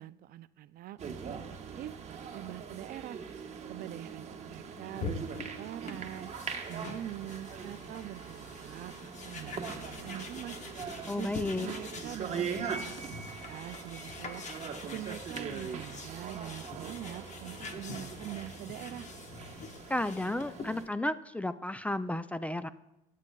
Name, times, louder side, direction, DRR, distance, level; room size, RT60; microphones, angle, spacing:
voice 1, 0.0-3.2 3.7-6.3 6.7-10.6 11.2-14.5 14.8-19.1, right 13 dB, 60° right, 15 dB, 0.4 m, -44 dB
sound 1, 1.0-20.8, right 6 dB, 40° right, 1.2 m, -42 dB
sound 2, 4.9-20.9, left 4 dB, 45° left, 1.2 m, -45 dB
voice 2, 11.1-11.7 19.9-22.7, left 1 dB, 10° left, 13 dB, 0.3 m, -33 dB
21.5 x 8.4 x 2.3 m, 0.94 s
cardioid pair, 110°, 17 cm